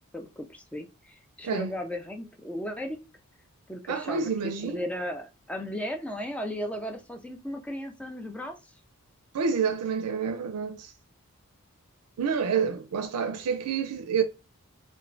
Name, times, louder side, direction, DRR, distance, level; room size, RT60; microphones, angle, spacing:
voice 1, 0.1-3.0 3.7-4.3 4.6-8.6, equal, 5° left, 0.4 m, -35 dB
voice 2, 3.9-4.8 9.3-10.9 12.2-14.2, right 6 dB, 85° right, 0.4 m, -28 dB
3.0 x 2.2 x 2.5 m
head